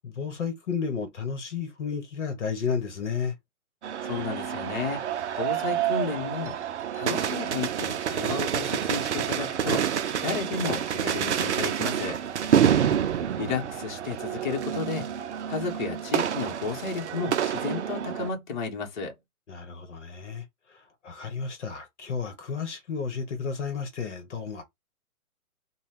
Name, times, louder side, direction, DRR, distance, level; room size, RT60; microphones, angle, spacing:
voice 1, 0.0-3.3 12.4-13.0 19.5-24.6, left 5 dB, 55° left, 1.2 m, -33 dB
sound 1, 3.8-18.3, right 9 dB, 55° right, 0.5 m, -28 dB
voice 2, 4.0-5.0 5.4-6.5 6.9-9.9 10.2-12.2 13.4-15.1 15.5-19.1, left 5 dB, 30° left, 1.2 m, -32 dB
3.9 x 2.3 x 3.7 m
hypercardioid pair, 155°, 44 cm